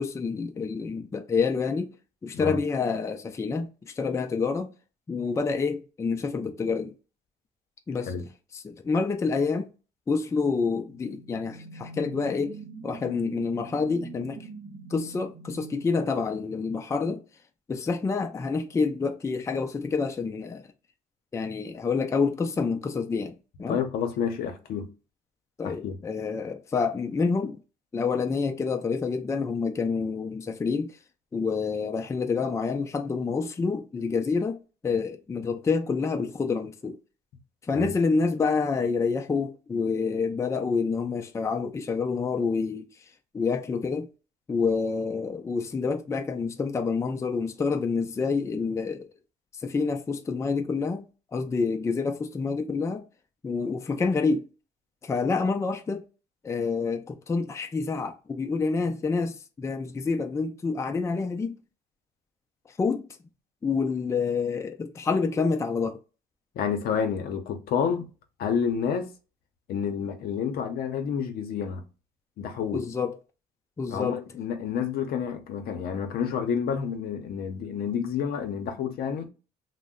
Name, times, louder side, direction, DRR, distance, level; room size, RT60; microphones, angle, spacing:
voice 1, 0.0-1.9 2.2-4.7 5.1-6.9 7.9-8.1 8.6-9.7 10.1-12.6 12.8-14.4 14.9-17.2 17.7-20.6 21.3-23.8 25.6-27.6 27.9-31.0 31.3-34.6 34.8-37.0 37.7-42.8 43.3-44.1 44.5-49.0 49.6-51.0 51.3-53.0 53.4-54.4 55.0-56.0 56.4-61.5 62.8-63.0 63.6-66.0 72.7-73.1 73.8-74.2, left 4 dB, 15° left, 0.4 m, -28 dB
sound 1, 10.6-17.0, right 4 dB, 40° right, 0.7 m, -45 dB
voice 2, 23.7-24.9 25.6-26.0 37.7-37.9 66.5-68.1 68.4-69.1 69.7-71.8 72.4-72.8 73.9-79.3, left 7 dB, 65° left, 0.6 m, -29 dB
2.6 x 2.1 x 3.6 m
cardioid pair, 110°, 17 cm